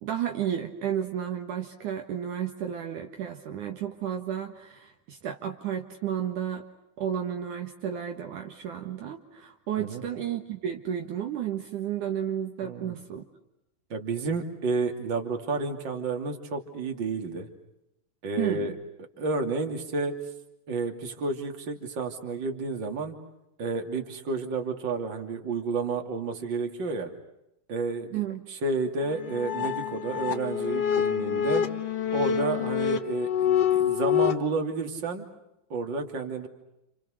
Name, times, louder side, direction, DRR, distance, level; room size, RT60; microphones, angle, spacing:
voice 1, 0.0-6.6 7.0-13.2 18.4-18.8 28.1-28.4, right 9 dB, 65° right, 4 dB, 3.0 m, -32 dB
voice 2, 12.6-12.9 13.9-17.5 18.2-18.7 19.2-20.2 20.7-23.2 23.6-27.1 27.7-31.7 32.1-35.3 35.7-36.5, right 3 dB, 35° right, 4 dB, 3.2 m, -31 dB
sound 1, 29.0-34.3, left 9 dB, 55° left, 2.1 m, -26 dB
30.0 x 29.5 x 6.5 m, 0.89 s
omnidirectional pair, 4.0 m